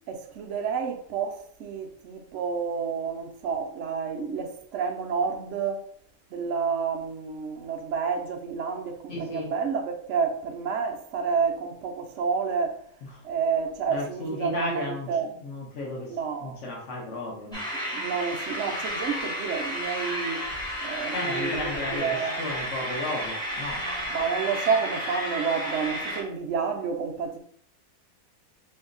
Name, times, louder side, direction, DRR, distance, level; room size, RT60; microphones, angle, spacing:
voice 1, 0.0-5.9 6.3-12.8 13.2-15.3 16.1-16.6 17.9-20.4 20.8-22.4 24.1-27.4, right 6 dB, 70° right, 0.7 m, -29 dB
voice 2, 9.1-9.5 13.9-15.1 15.4-16.1 16.4-17.7 21.1-23.8, left 2 dB, 50° left, 1.1 m, -34 dB
sound 1, 17.5-26.2, equal, 5° left, 0.7 m, -32 dB
3.1 x 2.7 x 3.7 m
omnidirectional pair, 1.8 m